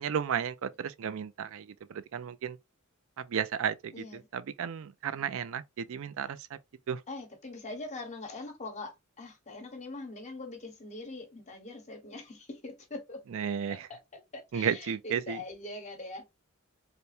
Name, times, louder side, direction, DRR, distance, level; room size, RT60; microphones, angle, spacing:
voice 1, 0.0-2.6 3.2-6.6 6.9-7.0 13.3-13.9 14.5-15.4, right 7 dB, 65° right, 0.4 m, -33 dB
voice 2, 3.9-4.3 7.1-13.2 13.7-13.8 14.3-16.2, left 2 dB, 35° left, 1.3 m, -42 dB
3.4 x 2.1 x 4.2 m
head